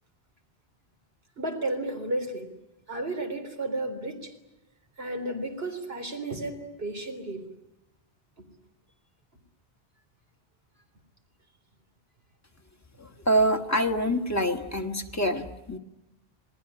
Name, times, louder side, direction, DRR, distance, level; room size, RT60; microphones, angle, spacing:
voice 1, 1.4-2.5 2.9-4.3 5.0-7.4, right 2 dB, 80° right, 5 dB, 4.0 m, -32 dB
voice 2, 13.0-15.8, right 1 dB, 15° left, 3 dB, 1.7 m, -26 dB
28.5 x 19.0 x 9.9 m, 0.92 s
omnidirectional pair, 1.0 m